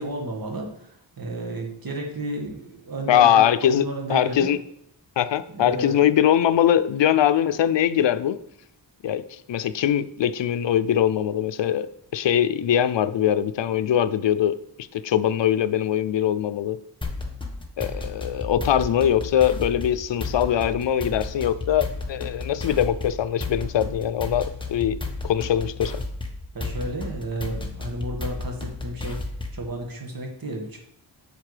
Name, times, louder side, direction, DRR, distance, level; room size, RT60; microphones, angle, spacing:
voice 1, 0.0-3.4 3.7-4.5 5.5-6.1 26.5-29.2 29.5-30.8, right 2 dB, 55° right, 2 dB, 1.8 m, -32 dB
voice 2, 3.1-4.6 5.2-8.4 9.0-14.6 14.9-16.8 17.8-25.0 25.2-26.0, left 10 dB, 85° left, 13 dB, 0.6 m, -22 dB
sound 1, 17.0-29.7, left 3 dB, 10° left, 1.2 m, -33 dB
8.3 x 6.6 x 5.0 m, 0.73 s
wide cardioid pair, 120°, 42 cm